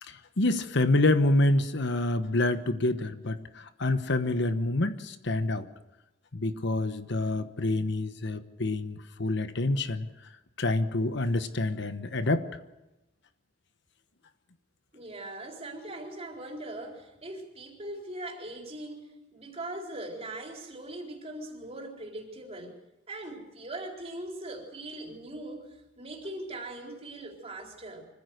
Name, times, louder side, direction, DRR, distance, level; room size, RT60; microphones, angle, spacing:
voice 1, 0.0-5.7 6.3-10.1 10.6-12.5, left 2 dB, 65° left, 10 dB, 1.2 m, -27 dB
voice 2, 14.9-22.8 23.1-28.1, right 1 dB, 35° right, 1 dB, 4.1 m, -40 dB
25.0 x 15.0 x 8.0 m, 0.99 s
head